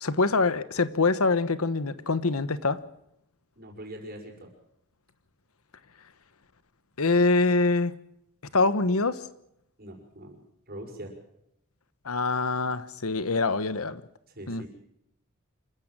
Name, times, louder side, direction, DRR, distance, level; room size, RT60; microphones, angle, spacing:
voice 1, 0.0-2.8 7.0-7.9 8.5-9.2 12.0-14.0 14.5-14.6, left 3 dB, 85° left, 14 dB, 1.2 m, -24 dB
voice 2, 3.6-4.5 9.8-10.4 10.7-11.1 14.3-14.7, right 1 dB, 45° right, 2 dB, 5.7 m, -42 dB
27.0 x 14.5 x 7.5 m, 0.78 s
head